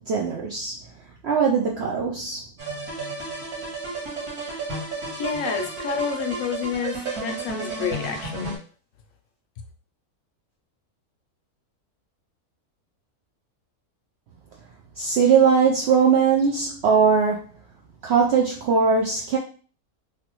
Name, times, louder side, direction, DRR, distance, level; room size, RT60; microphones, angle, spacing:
voice 1, 0.1-0.7 1.2-2.4 15.0-17.4 18.0-19.4, right 6 dB, 65° right, -1 dB, 0.6 m, -20 dB
sound 1, 2.6-8.6, right 3 dB, 90° right, 1.8 m, -32 dB
voice 2, 5.2-8.6, left 6 dB, 70° left, 4 dB, 0.9 m, -29 dB
3.2 x 2.5 x 2.9 m, 0.39 s
omnidirectional pair, 1.6 m